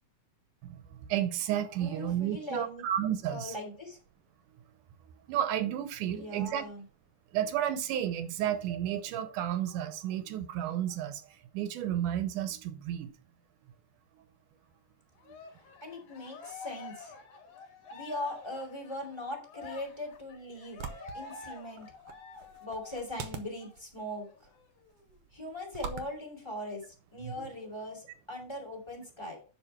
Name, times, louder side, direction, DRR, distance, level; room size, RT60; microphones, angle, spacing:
voice 1, 0.6-3.6 5.3-6.6 7.3-13.1 15.3-15.4 27.2-27.5, right 11 dB, 85° right, 2.4 m, -32 dB
voice 2, 1.8-2.8 3.2-4.0 6.1-6.8 15.8-17.1 17.9-20.9 21.1-21.9 22.6-24.5 25.3-26.8 27.1-29.4, left 1 dB, 10° left, 2.2 m, -40 dB
Cheering, 15.2-23.2 23.6-23.8 24.1-25.1, left 4 dB, 75° left, 3.0 m, -48 dB
sound 1, 19.7-27.3, right 6 dB, 65° right, 1.7 m, -46 dB
11.0 x 4.3 x 4.4 m
omnidirectional pair, 3.5 m